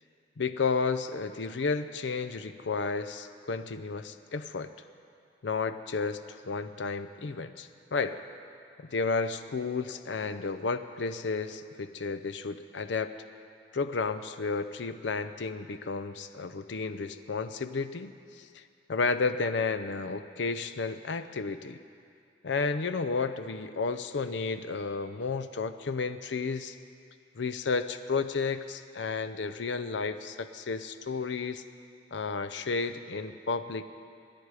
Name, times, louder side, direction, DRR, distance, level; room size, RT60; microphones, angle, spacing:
voice 1, 0.4-4.7 5.4-8.2 8.9-13.1 13.7-18.6 18.9-21.8 22.4-26.8 27.4-31.6 32.1-33.8, left 4 dB, 75° left, 10 dB, 0.6 m, -32 dB
27.0 x 10.5 x 4.9 m, 2.4 s
head